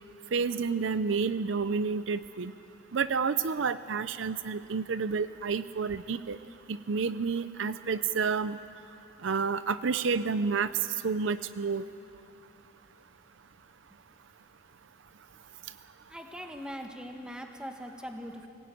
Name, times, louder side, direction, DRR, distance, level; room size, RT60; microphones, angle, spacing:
voice 1, 0.3-2.5 2.9-6.4 6.7-8.6 9.2-10.7 11.0-11.8, right 5 dB, 65° right, 13 dB, 0.5 m, -30 dB
voice 2, 16.1-18.5, equal, 5° right, 3 dB, 1.6 m, -41 dB
23.5 x 17.0 x 9.2 m, 2.8 s
head